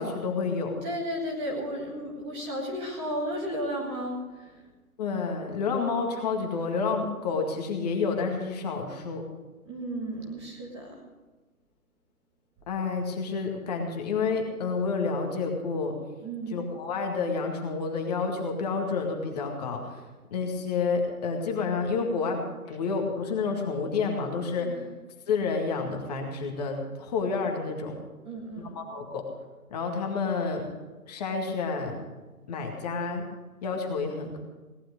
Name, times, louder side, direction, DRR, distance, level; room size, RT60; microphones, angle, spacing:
voice 1, 0.0-0.8 5.0-9.3 12.7-16.0 16.5-24.8 25.3-28.0 28.6-29.2 29.7-30.7 31.1-32.0 32.5-33.3 33.6-34.4, left 4 dB, 25° left, 2 dB, 2.0 m, -29 dB
voice 2, 0.8-4.7 9.6-11.0 16.2-16.6 24.6-24.9 28.2-28.7, equal, 10° right, -3 dB, 1.7 m, -34 dB
18.0 x 11.5 x 5.2 m, 1.3 s
figure-of-eight pair, 150°, 44 cm